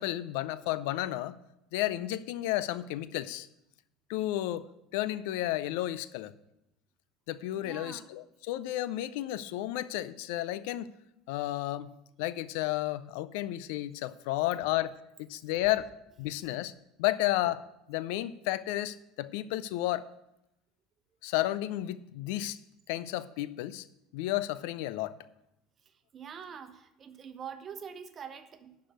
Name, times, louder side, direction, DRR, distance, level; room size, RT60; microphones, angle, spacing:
voice 1, 0.0-1.4 1.7-3.5 4.1-4.7 4.9-6.3 7.3-10.9 11.3-11.9 12.2-16.7 17.0-17.6 17.9-20.1 21.2-22.6 22.9-23.9 24.1-25.2, left 15 dB, 65° left, 17 dB, 0.4 m, -32 dB
voice 2, 7.5-8.1 15.6-15.7 26.1-28.8, right 7 dB, 40° right, 10 dB, 1.0 m, -45 dB
11.0 x 4.9 x 7.8 m, 0.83 s
hypercardioid pair, 65°, 0 cm